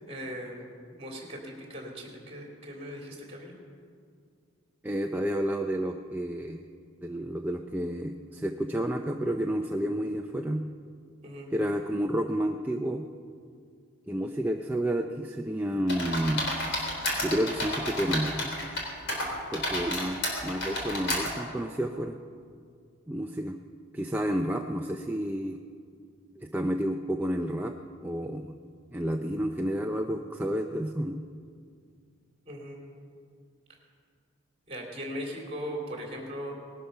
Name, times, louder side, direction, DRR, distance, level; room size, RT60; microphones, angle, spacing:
voice 1, 0.1-0.6 0.9-3.5 11.2-11.5 32.4-32.8 34.7-36.6, equal, 30° right, 0 dB, 3.3 m, -39 dB
voice 2, 4.8-6.6 7.0-10.6 11.5-13.0 14.1-16.4 17.2-18.5 19.5-22.2 23.1-23.6 23.9-25.6 26.4-27.7 28.0-28.5 28.9-31.2, equal, 10° right, 3 dB, 0.5 m, -30 dB
sound 1, 15.9-18.8 19.1-21.3, left 1 dB, 55° left, 3.7 m, -31 dB
19.5 x 12.0 x 5.7 m, 2.2 s
head